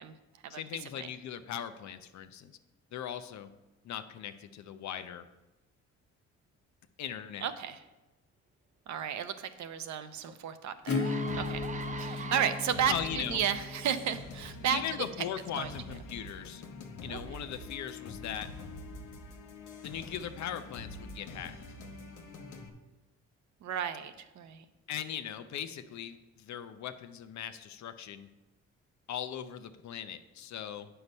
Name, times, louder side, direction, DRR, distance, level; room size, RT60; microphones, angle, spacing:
voice 1, 0.5-2.6 2.9-3.5 3.8-5.3 7.0-7.5 12.8-13.4 14.7-16.6 17.0-18.5 19.8-21.6 24.9-28.3 29.1-30.9, left 9 dB, 65° left, 10 dB, 0.7 m, -39 dB
voice 2, 7.4-7.8 8.9-11.1 11.3-11.6 12.0-14.8 15.6-15.7 17.1-17.2 23.6-24.6, right 9 dB, 70° right, 10 dB, 0.7 m, -33 dB
sound 1, 10.2-10.3 10.8-13.2 13.8-14.1, right 4 dB, 25° right, 0.6 m, -43 dB
Acoustic guitar / Strum, 10.9-16.4, left 3 dB, 50° left, 1.2 m, -37 dB
sound 2, 11.3-22.7, left 3 dB, 85° left, 1.0 m, -46 dB
8.1 x 5.7 x 5.3 m, 1.0 s
cardioid pair, 90°, 30 cm